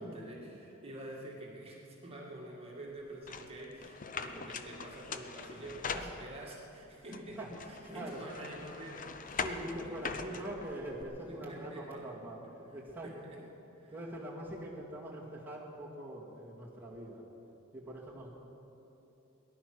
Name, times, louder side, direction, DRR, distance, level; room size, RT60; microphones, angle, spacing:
voice 1, 0.0-10.5 11.3-12.1 12.4-12.5 13.0-13.4 13.8-14.0, right 1 dB, 30° right, -3 dB, 2.1 m, -48 dB
sound 1, 3.3-6.6 7.1-11.0, left 5 dB, 40° left, 0.7 m, -42 dB
voice 2, 7.1-8.2 9.3-12.4 12.7-13.1 13.9-17.2 17.7-18.4, right 1 dB, 10° right, -6 dB, 2.1 m, -43 dB
18.5 x 11.0 x 6.2 m, 3.0 s
head